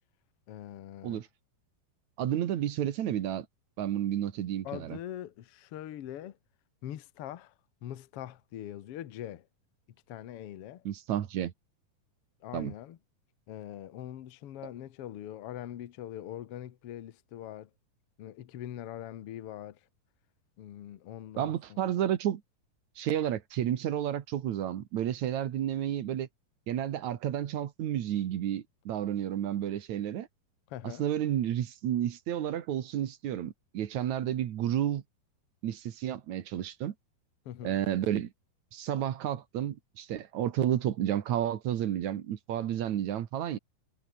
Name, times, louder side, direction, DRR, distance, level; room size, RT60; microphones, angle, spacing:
voice 1, 0.5-1.2 4.6-6.4 6.8-7.5 7.8-9.5 10.1-10.9 12.4-13.0 13.5-17.7 18.2-19.8 20.6-21.9 30.7-31.1 37.4-37.8, left 11 dB, 70° left, 1.4 m, -42 dB
voice 2, 2.2-3.5 3.8-5.0 10.9-11.5 12.5-12.7 21.4-22.4 23.0-26.3 26.7-30.3 30.8-35.0 35.6-36.9 37.6-38.3 38.7-43.6, right 11 dB, 60° right, 2.3 m, -31 dB
omnidirectional pair, 4.4 m